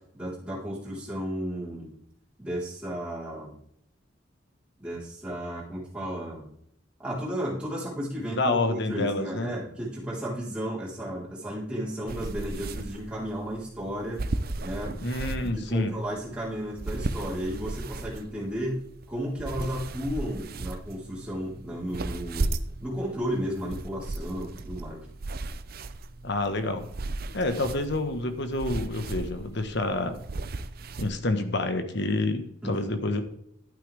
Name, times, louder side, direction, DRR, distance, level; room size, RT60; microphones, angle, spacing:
voice 1, 0.1-1.9 2.4-3.5 4.8-6.5 7.0-14.2 14.6-14.9 15.4-18.8 19.1-22.5 22.8-25.1 32.6-32.9, equal, 5° right, -7 dB, 4.0 m, -33 dB
voice 2, 8.3-9.5 15.0-16.0 26.2-26.9 27.3-30.1 31.0-33.2, left 2 dB, 60° left, 8 dB, 1.4 m, -28 dB
sound 1, 12.1-31.1, right 2 dB, 50° right, 0.6 m, -36 dB
11.5 x 9.2 x 3.5 m, 0.72 s
head